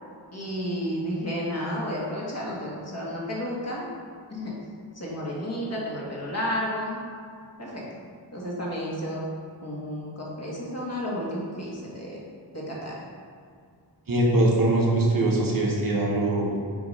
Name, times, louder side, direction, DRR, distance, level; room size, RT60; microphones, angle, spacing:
voice 1, 0.3-3.8 4.3-4.6 4.9-7.0 7.6-7.8 8.3-9.2 9.6-12.2 12.5-13.0, equal, 35° left, -5 dB, 1.4 m, -32 dB
voice 2, 14.1-16.6, right 2 dB, 50° right, -2 dB, 1.1 m, -22 dB
7.3 x 2.9 x 5.2 m, 2.2 s
wide cardioid pair, 130°, 43 cm